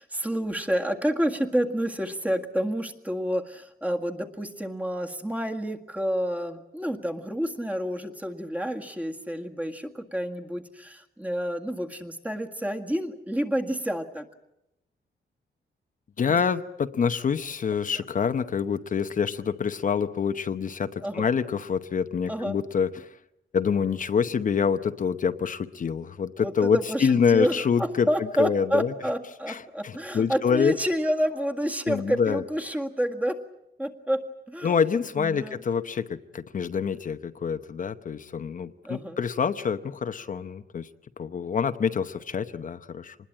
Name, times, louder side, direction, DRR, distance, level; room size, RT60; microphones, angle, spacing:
voice 1, 0.0-14.3 21.0-21.3 22.3-22.6 26.4-33.4 33.8-34.7 35.2-35.6 38.8-39.2, equal, 10° right, 4 dB, 1.8 m, -29 dB
voice 2, 16.2-23.1 23.5-28.1 28.4-28.9 29.5-30.7 31.9-32.4 34.6-40.9 41.2-43.2, left 6 dB, 45° left, 9 dB, 0.9 m, -26 dB
26.0 x 20.5 x 8.7 m, 0.87 s
wide cardioid pair, 150°, 19 cm